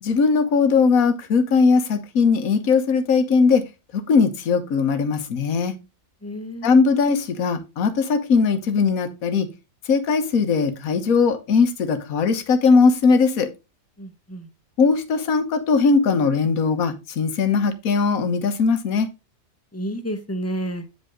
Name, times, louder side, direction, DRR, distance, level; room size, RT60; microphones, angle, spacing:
voice 1, 0.0-3.6 3.9-5.7 6.6-9.5 9.8-13.5 14.8-19.1, left 5 dB, 65° left, 9 dB, 1.5 m, -19 dB
voice 2, 6.2-6.8 14.0-14.5 19.7-20.9, right 1 dB, 15° left, 9 dB, 0.6 m, -30 dB
9.0 x 5.4 x 3.6 m, 0.26 s
omnidirectional pair, 1.7 m